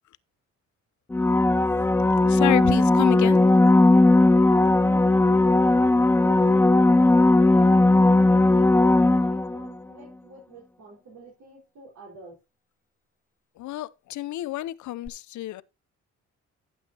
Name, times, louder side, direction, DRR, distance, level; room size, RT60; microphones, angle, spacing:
sound 1, 1.1-9.7 15.1-15.2, left 2 dB, 10° left, 0.4 m, -18 dB
voice 1, 2.3-3.4 13.6-15.6, left 15 dB, 75° left, 0.7 m, -29 dB
voice 2, 3.9-6.8 7.3-12.4, right 3 dB, 65° right, 5.0 m, -46 dB
12.5 x 8.0 x 2.9 m
cardioid pair, 90°, 30 cm